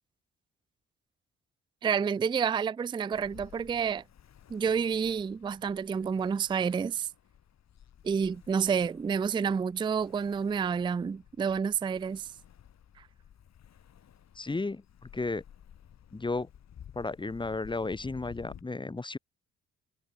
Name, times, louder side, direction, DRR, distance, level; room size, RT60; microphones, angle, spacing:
voice 1, 1.8-4.0 4.5-7.1 8.0-12.3, right 6 dB, 15° right, 0.3 m, -29 dB
Ocean, 3.1-18.6, left 9 dB, 60° left, 5.9 m, -54 dB
voice 2, 14.4-15.4 16.1-16.5 16.9-19.2, left 3 dB, 15° left, 1.1 m, -33 dB
cardioid pair, 90°, 30 cm